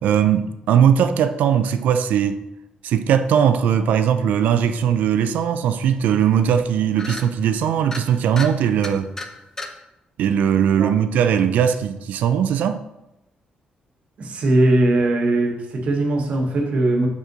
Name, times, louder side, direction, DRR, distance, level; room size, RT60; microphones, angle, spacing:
voice 1, 0.0-2.4 2.8-9.1 10.2-12.8, right 8 dB, 85° right, 10 dB, 0.4 m, -19 dB
sound 1, 5.6-5.7 6.0-6.2 6.5-6.7 7.0-7.3 7.8-8.0 8.4-8.5 8.8-9.3 9.6-9.7, left 2 dB, 20° left, 0.5 m, -32 dB
voice 2, 14.2-17.1, right 2 dB, 50° right, 3 dB, 0.9 m, -20 dB
5.3 x 4.9 x 3.9 m, 0.93 s
cardioid pair, 155°, 3 cm